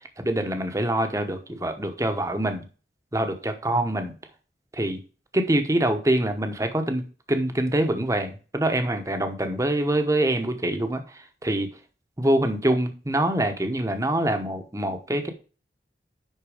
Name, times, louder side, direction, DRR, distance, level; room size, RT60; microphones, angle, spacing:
voice 1, 0.2-2.6 3.1-4.1 4.7-5.0 5.3-11.7 12.2-15.3, right 1 dB, 20° right, 6 dB, 1.0 m, -25 dB
10.5 x 4.1 x 4.9 m, 0.36 s
head